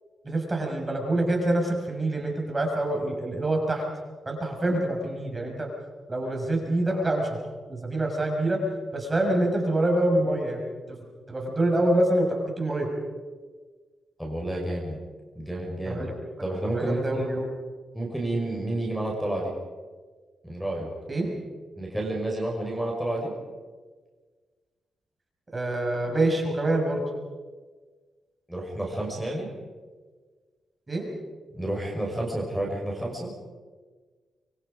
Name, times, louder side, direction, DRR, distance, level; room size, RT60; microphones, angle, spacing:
voice 1, 0.2-3.8 4.3-5.7 6.1-7.4 7.7-8.6 8.9-10.6 10.9-11.0 11.3-12.9 15.8-16.1 16.7-17.4 21.1-21.3 25.5-27.0 30.9-31.1, right 1 dB, 25° right, 1 dB, 6.1 m, -26 dB
voice 2, 14.2-15.0 15.4-16.1 16.4-17.3 17.9-19.5 20.4-20.9 21.8-23.3 28.5-29.5 31.5-33.3, right 1 dB, ahead, -3 dB, 5.3 m, -30 dB
26.0 x 23.0 x 5.2 m, 1.4 s
cardioid pair, 95°, 0 cm